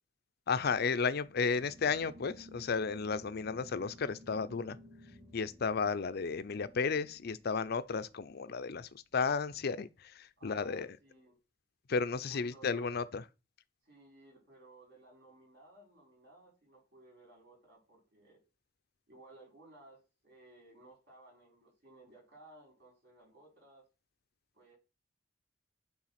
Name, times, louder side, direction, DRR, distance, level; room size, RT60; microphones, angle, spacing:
voice 1, 0.5-4.8 5.3-10.9 11.9-13.2, left 5 dB, 55° left, 0.5 m, -33 dB
sound 1, 0.5-8.3, equal, 30° right, 2.8 m, -57 dB
voice 2, 10.4-11.4 12.2-12.9 13.8-18.4 19.1-23.8 24.5-24.8, right 2 dB, 60° right, 5.3 m, -58 dB
8.8 x 3.9 x 5.8 m
head